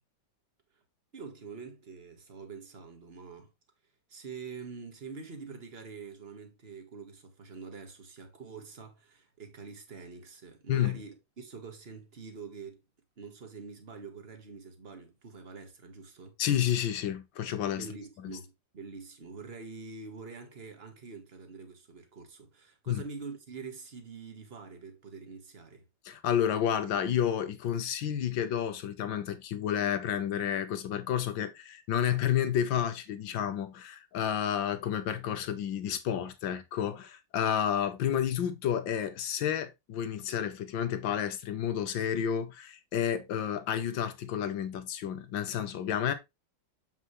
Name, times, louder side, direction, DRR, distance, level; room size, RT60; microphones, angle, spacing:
voice 1, 1.1-3.5 4.1-12.8 13.2-16.3 17.8-25.9, right 5 dB, 35° right, 1.7 m, -45 dB
voice 2, 16.4-17.9 18.2-18.4 22.9-23.0 26.1-46.1, left 9 dB, 90° left, 1.7 m, -30 dB
7.5 x 5.5 x 3.1 m
omnidirectional pair, 2.0 m